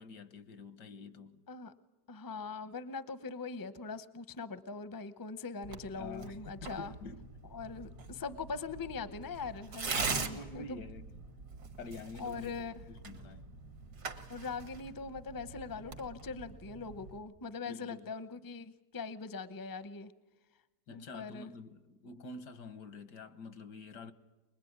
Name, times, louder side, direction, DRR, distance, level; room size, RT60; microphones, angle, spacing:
voice 1, 0.0-1.4 6.0-7.3 10.0-11.1 11.8-13.5 17.7-18.1 20.9-24.1, left 3 dB, 85° left, 1.8 m, -47 dB
voice 2, 2.1-6.9 7.5-10.8 12.2-12.7 14.3-20.1 20.9-21.5, left 4 dB, 20° left, 0.5 m, -42 dB
Tearing, 5.6-17.2, right 4 dB, 75° right, 2.4 m, -43 dB
23.5 x 21.5 x 9.5 m
omnidirectional pair, 1.8 m